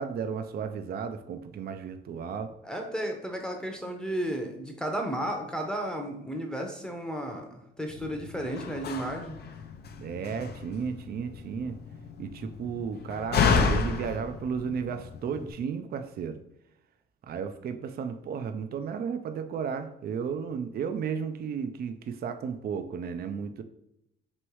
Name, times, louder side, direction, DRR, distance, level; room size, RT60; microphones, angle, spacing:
voice 1, 0.0-2.5 10.0-11.8 12.2-16.4 17.3-23.6, right 6 dB, 50° right, 8 dB, 0.4 m, -34 dB
voice 2, 2.6-9.4, right 1 dB, 5° left, 2 dB, 0.7 m, -33 dB
Slam, 7.9-15.5, left 5 dB, 55° left, 0.5 m, -31 dB
3.1 x 3.0 x 4.6 m, 0.81 s
cardioid pair, 90°, 20 cm